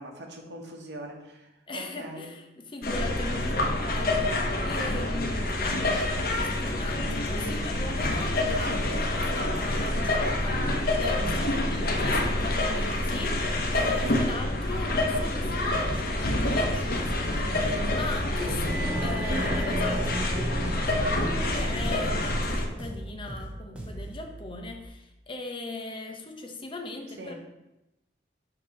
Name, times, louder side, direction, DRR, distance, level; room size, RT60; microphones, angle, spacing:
voice 1, 0.0-2.3 8.7-8.8 14.0-14.3 18.5-18.6 21.3-22.2 27.1-27.3, right 1 dB, 70° right, 1 dB, 1.1 m, -41 dB
voice 2, 1.7-20.3 21.5-27.3, left 2 dB, 30° left, 2 dB, 0.8 m, -39 dB
sound 1, 2.8-22.7, left 1 dB, 55° left, 0.9 m, -27 dB
sound 2, 11.5-12.7 17.9-24.9, right 2 dB, 30° right, 0.4 m, -39 dB
sound 3, 16.6-24.2, equal, 5° right, 0.9 m, -40 dB
7.6 x 3.0 x 5.8 m, 0.94 s
head